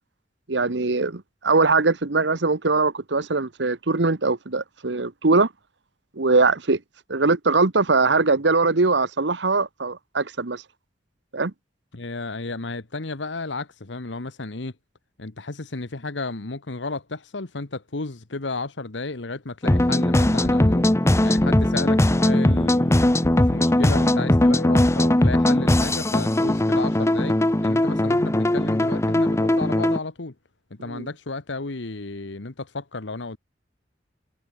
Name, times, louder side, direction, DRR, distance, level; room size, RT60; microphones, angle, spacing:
voice 1, 0.5-5.5 6.2-6.8 7.1-10.6 11.3-11.5 30.9-31.1, right 3 dB, 70° right, 1.2 m, -21 dB
voice 2, 11.9-14.7 15.2-20.9 21.2-22.9 23.2-27.4 27.6-30.3 30.7-33.4, left 3 dB, 85° left, 1.3 m, -33 dB
sound 1, 19.6-30.0, left 1 dB, 15° left, 0.8 m, -19 dB
head